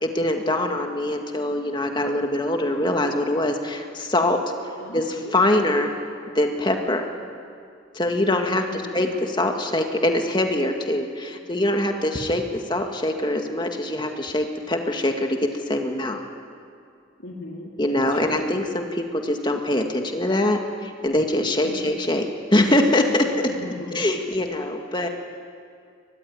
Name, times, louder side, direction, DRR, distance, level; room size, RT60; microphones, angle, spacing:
voice 1, 0.0-4.4 4.9-5.9 6.3-7.1 7.9-15.4 15.7-16.2 17.8-23.3 23.9-25.1, left 1 dB, 25° left, 4 dB, 2.1 m, -23 dB
voice 2, 4.8-5.1 8.7-9.0 17.2-18.3 21.6-21.9 23.4-24.0 25.0-25.1, left 2 dB, 70° left, -1 dB, 3.5 m, -38 dB
23.5 x 20.5 x 9.8 m, 2.3 s
head